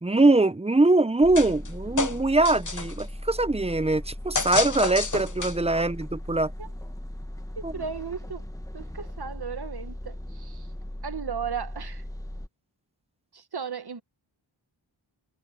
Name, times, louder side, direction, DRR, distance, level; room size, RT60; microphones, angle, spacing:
voice 1, 0.0-6.5 7.6-7.7, right 2 dB, 15° right, 0.6 m, -22 dB
sound 1, 1.2-12.5, left 1 dB, 5° left, 1.3 m, -38 dB
sound 2, 1.3-1.7 2.0-3.0 4.3-5.8, left 4 dB, 40° left, 1.1 m, -29 dB
voice 2, 7.6-8.5 8.7-10.7 11.0-12.0 13.3-14.0, right 6 dB, 55° right, 1.0 m, -35 dB
wide cardioid pair, 65°, 47 cm